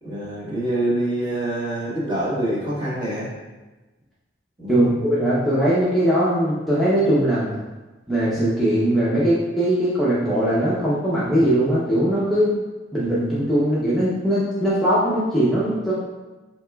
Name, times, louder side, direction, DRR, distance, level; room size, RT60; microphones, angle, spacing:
voice 1, 0.0-3.3 4.6-4.9, right 1 dB, 25° right, -7 dB, 1.3 m, -25 dB
voice 2, 4.7-7.5 8.1-12.5 12.9-15.9, right 1 dB, ahead, -10 dB, 0.7 m, -20 dB
7.7 x 2.9 x 2.3 m, 1.2 s
head